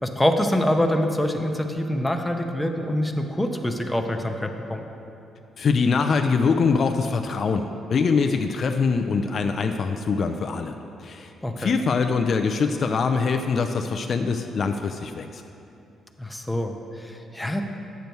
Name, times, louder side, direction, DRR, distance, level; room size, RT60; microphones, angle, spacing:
voice 1, 0.0-4.9 11.4-11.7 16.2-17.6, left 1 dB, 10° left, 4 dB, 0.7 m, -25 dB
voice 2, 5.6-15.4, left 5 dB, 50° left, 5 dB, 0.4 m, -23 dB
9.1 x 6.9 x 4.6 m, 2.8 s
cardioid pair, 90°, 0 cm